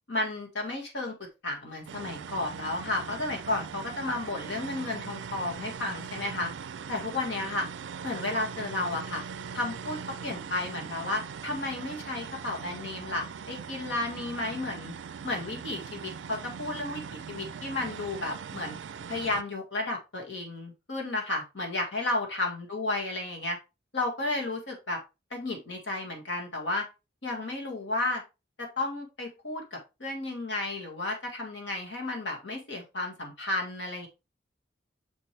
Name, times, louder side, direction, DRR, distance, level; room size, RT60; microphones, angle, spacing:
voice 1, 0.1-6.5 6.9-7.7 8.0-9.2 9.5-14.9 15.2-18.8 19.1-23.6 23.9-25.0 25.3-26.8 27.2-28.2 28.6-34.1, left 2 dB, 75° left, 1 dB, 1.7 m, -33 dB
sound 1, 1.9-19.4, right 6 dB, 75° right, 0.4 m, -41 dB
6.8 x 4.4 x 3.2 m, 0.26 s
head